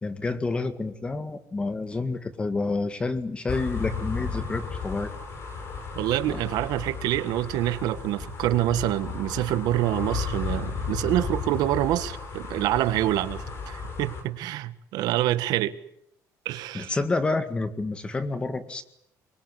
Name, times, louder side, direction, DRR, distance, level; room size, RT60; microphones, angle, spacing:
voice 1, 0.0-5.1 6.3-6.4 16.7-18.8, left 3 dB, 15° left, 1.9 m, -29 dB
sound 1, 3.5-14.2, left 5 dB, 40° left, 5.7 m, -34 dB
voice 2, 5.9-15.8 16.4-17.0, right 14 dB, 85° right, 1.7 m, -26 dB
25.0 x 22.5 x 9.8 m
cardioid pair, 170°, 7 cm